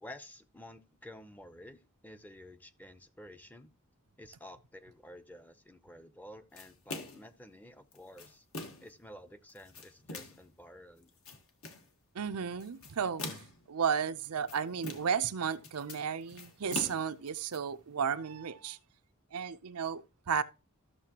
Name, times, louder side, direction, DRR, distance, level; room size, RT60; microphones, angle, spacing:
voice 1, 0.0-3.7 4.2-8.5 8.8-11.1, left 1 dB, 10° left, 0.6 m, -51 dB
sound 1, 6.6-7.3 7.9-8.9 9.5-10.5 11.0-11.9 12.6-13.7 14.2-15.3 15.5-17.6, left 3 dB, 70° left, 1.5 m, -43 dB
voice 2, 12.1-13.4 13.7-18.8 19.3-20.4, right 7 dB, 90° right, 0.6 m, -33 dB
13.5 x 6.7 x 2.9 m
head